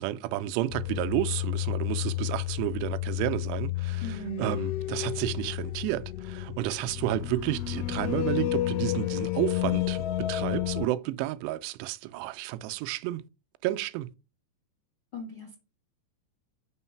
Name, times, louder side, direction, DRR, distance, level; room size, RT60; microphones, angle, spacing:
voice 1, 0.0-13.2 13.6-14.1, right 15 dB, 85° right, 2.7 m, -31 dB
sound 1, 0.7-10.9, left 15 dB, 85° left, 2.7 m, -31 dB
voice 2, 4.0-4.5 15.1-15.6, right 2 dB, 55° left, 1.2 m, -38 dB
6.2 x 3.9 x 5.7 m
omnidirectional pair, 4.9 m